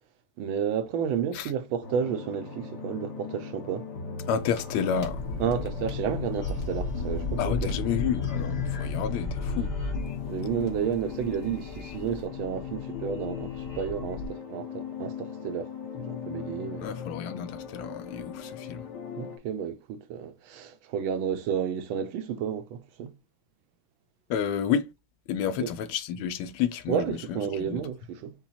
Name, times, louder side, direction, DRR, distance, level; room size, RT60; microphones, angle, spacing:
voice 1, 0.4-3.9 5.4-7.7 10.3-15.7 16.0-16.9 19.2-23.1 25.6-25.7 26.9-28.3, right 8 dB, 75° right, 1.3 m, -31 dB
sound 1, 1.8-19.4, left 5 dB, 55° left, 1.4 m, -39 dB
voice 2, 4.3-5.2 7.4-9.7 16.8-18.9 24.3-24.9 25.3-27.9, left 8 dB, 80° left, 1.4 m, -30 dB
sound 2, 4.4-14.2, left 4 dB, 40° left, 1.5 m, -34 dB
5.6 x 2.2 x 4.1 m
omnidirectional pair, 2.4 m